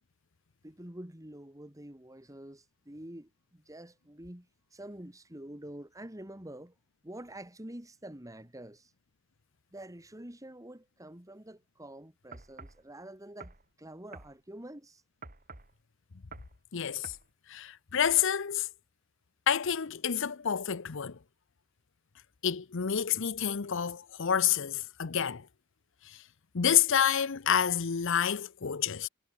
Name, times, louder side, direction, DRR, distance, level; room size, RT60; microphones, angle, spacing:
voice 1, 0.6-6.7 7.0-8.9 9.7-15.0, right 1 dB, 15° right, 2.4 m, -47 dB
sound 1, 12.3-12.8 13.4-13.6 14.1-14.3 15.2-15.7 16.3-16.6 17.0-17.3, right 3 dB, 40° right, 3.5 m, -48 dB
voice 2, 16.7-17.1 17.5-18.7 19.5-21.2 22.4-25.5 26.1-26.2 26.5-29.1, left 8 dB, 60° left, 0.7 m, -28 dB
head